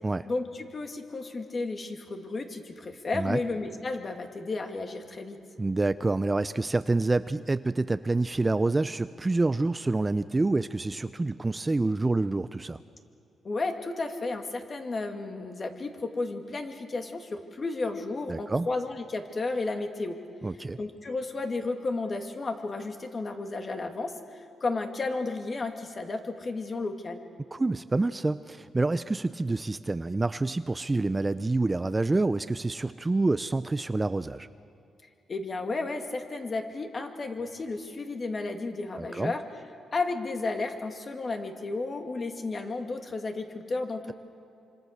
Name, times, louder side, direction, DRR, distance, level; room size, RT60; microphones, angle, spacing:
voice 1, 0.3-5.4 13.4-20.2 20.8-27.2 35.3-39.4 39.9-44.1, left 3 dB, 35° left, 5 dB, 2.3 m, -33 dB
voice 2, 5.6-12.8 18.3-18.7 20.4-20.8 27.5-34.5 39.0-39.3, right 2 dB, 20° right, 13 dB, 0.5 m, -27 dB
26.0 x 26.0 x 6.6 m, 2.8 s
cardioid pair, 105°, 0 cm